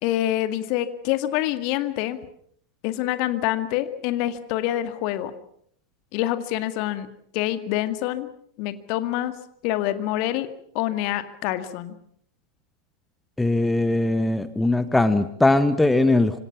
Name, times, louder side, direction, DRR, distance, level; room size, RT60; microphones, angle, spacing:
voice 1, 0.0-2.2 2.8-5.3 6.1-7.1 7.3-8.3 8.6-9.3 9.6-10.5 10.7-12.0, left 13 dB, 45° left, 10 dB, 2.0 m, -26 dB
voice 2, 13.4-16.3, left 2 dB, 5° left, 13 dB, 1.2 m, -20 dB
26.5 x 26.0 x 5.9 m, 0.65 s
figure-of-eight pair, 90°, 0 cm